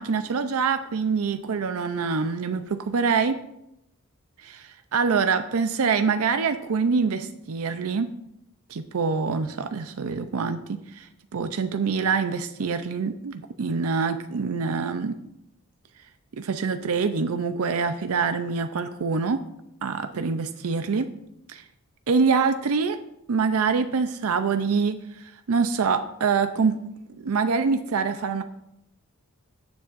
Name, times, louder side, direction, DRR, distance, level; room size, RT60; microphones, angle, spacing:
voice 1, 0.0-3.4 4.4-8.1 8.7-15.1 16.3-19.4 19.8-21.1 21.5-21.6 22.1-23.0 23.3-26.8 27.2-28.4, right 5 dB, 75° right, 9 dB, 0.5 m, -25 dB
16.5 x 7.2 x 2.5 m, 0.81 s
head